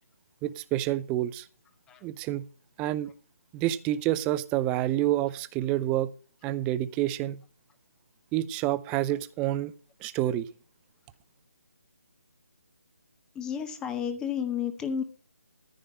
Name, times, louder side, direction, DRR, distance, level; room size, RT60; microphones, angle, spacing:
voice 1, 0.4-1.5 2.0-2.5 2.8-3.1 3.5-6.1 6.4-7.4 8.3-9.7 10.0-10.5, right 14 dB, 15° right, 0.5 m, -28 dB
voice 2, 13.3-15.0, left 8 dB, 10° left, 1.0 m, -31 dB
14.0 x 5.2 x 6.4 m
figure-of-eight pair, 150°, 8 cm